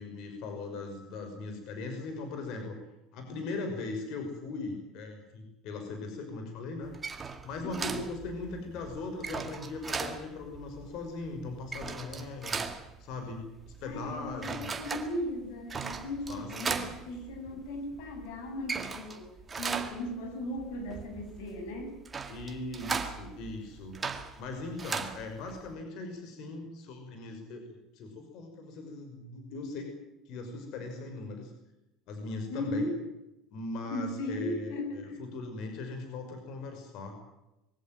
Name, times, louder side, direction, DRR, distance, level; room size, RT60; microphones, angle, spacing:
voice 1, 0.0-2.8 3.1-6.9 7.4-14.7 16.3-16.9 17.5-17.6 22.3-24.0 24.4-30.0 30.3-31.5 32.1-32.9 33.5-37.2, left 3 dB, 50° left, 5 dB, 5.8 m, -39 dB
sound 1, 6.8-25.8, right 5 dB, 15° right, 2.0 m, -39 dB
voice 2, 7.6-8.0 13.8-19.3 19.6-22.0 32.5-33.0 33.9-35.2, left 1 dB, 80° left, 6 dB, 7.5 m, -37 dB
23.0 x 17.0 x 9.3 m, 0.92 s
cardioid pair, 165°, 0 cm